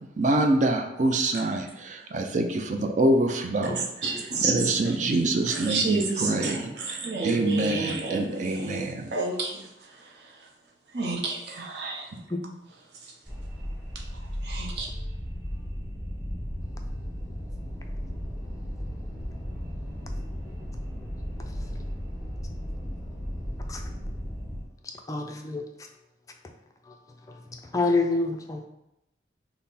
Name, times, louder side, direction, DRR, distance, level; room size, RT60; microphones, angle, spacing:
voice 1, 0.2-3.8 4.1-7.0 7.2-9.1, right 2 dB, 45° right, 4 dB, 0.5 m, -26 dB
voice 2, 4.0-4.9 5.4-9.7 10.9-12.1 14.4-14.9, right 3 dB, 70° right, 0 dB, 0.8 m, -30 dB
sound 1, 13.2-24.6, equal, 10° right, 1.4 m, -35 dB
voice 3, 25.1-25.7 27.7-28.7, left 3 dB, 20° left, 3 dB, 0.3 m, -26 dB
5.6 x 2.1 x 4.1 m, 0.85 s
head